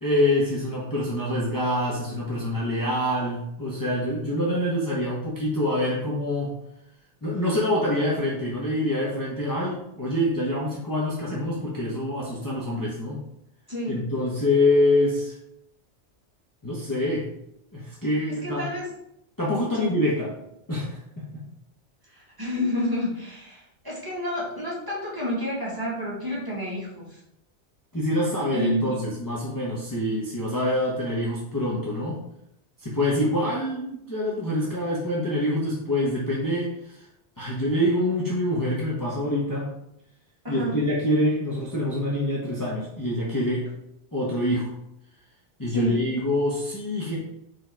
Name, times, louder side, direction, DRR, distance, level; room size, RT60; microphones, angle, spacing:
voice 1, 0.0-6.6 7.2-13.2 13.9-15.4 16.6-17.3 17.7-18.6 19.4-20.3 20.7-21.5 27.9-32.2 32.8-37.0 37.4-39.7 40.5-43.7 44.1-44.7 45.6-47.2, left 1 dB, 20° left, -6 dB, 1.1 m, -25 dB
voice 2, 13.7-14.0 18.4-18.9 19.7-19.9 22.1-27.2 28.5-29.0 40.4-40.8 45.7-46.0, equal, 20° right, -7 dB, 2.3 m, -29 dB
5.0 x 4.5 x 4.6 m, 0.79 s
omnidirectional pair, 1.2 m